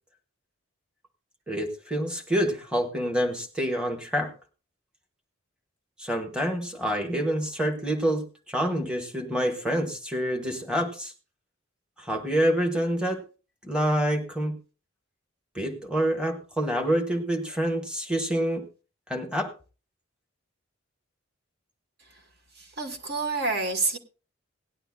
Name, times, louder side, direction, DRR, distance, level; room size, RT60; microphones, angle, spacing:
voice 1, 1.5-4.3 6.0-11.1 12.0-13.2 13.6-14.6 15.5-18.6 19.1-19.5, equal, 5° right, 3 dB, 1.2 m, -27 dB
voice 2, 22.6-24.0, right 3 dB, 50° right, 5 dB, 1.3 m, -28 dB
18.0 x 11.0 x 2.3 m, 0.34 s
head